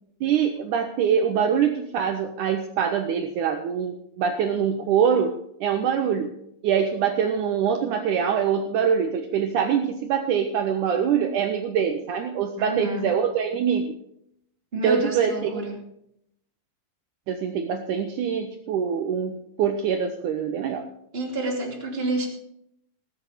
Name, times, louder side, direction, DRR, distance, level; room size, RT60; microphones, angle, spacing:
voice 1, 0.2-5.3 5.6-6.3 6.6-13.9 14.8-15.6 17.3-20.9, right 7 dB, 80° right, 6 dB, 1.8 m, -24 dB
voice 2, 12.6-13.1 14.7-15.8 21.1-22.3, right 2 dB, 20° right, -1 dB, 2.3 m, -28 dB
18.5 x 8.0 x 4.9 m, 0.77 s
omnidirectional pair, 4.5 m